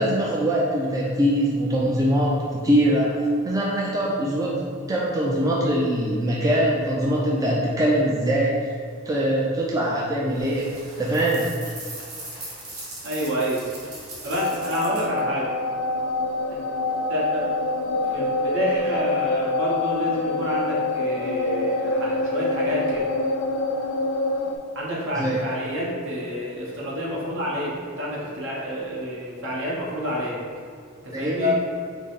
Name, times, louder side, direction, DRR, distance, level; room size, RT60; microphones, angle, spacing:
voice 1, 0.0-3.1 3.4-8.7 9.1-10.7 11.0-11.5 25.2-25.4 31.1-31.5, equal, 15° right, -4 dB, 0.4 m, -22 dB
sound 1, 10.3-15.2, right 2 dB, 85° right, 1.1 m, -39 dB
voice 2, 13.0-13.6 14.2-15.5 16.5-16.6 17.1-17.6 18.1-23.1 24.7-30.4 31.0-31.5, equal, 65° right, -5 dB, 1.0 m, -28 dB
sound 2, 14.3-24.6, left 2 dB, 80° left, 0.4 m, -26 dB
5.0 x 2.0 x 3.9 m, 2.2 s
head